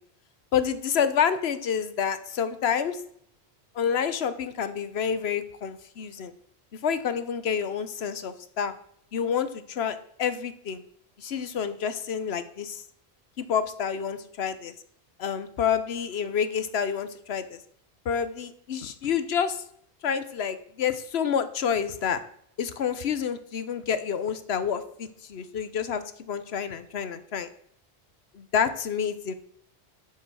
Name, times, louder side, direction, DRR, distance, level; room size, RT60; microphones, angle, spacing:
voice 1, 0.5-3.0 3.7-6.3 6.7-8.7 9.1-10.8 11.2-12.8 13.4-14.7 15.2-17.6 18.0-19.6 20.0-22.2 22.6-27.5 28.3-29.3, left 7 dB, 75° left, 12 dB, 1.1 m, -28 dB
7.4 x 7.0 x 6.2 m, 0.68 s
omnidirectional pair, 1.1 m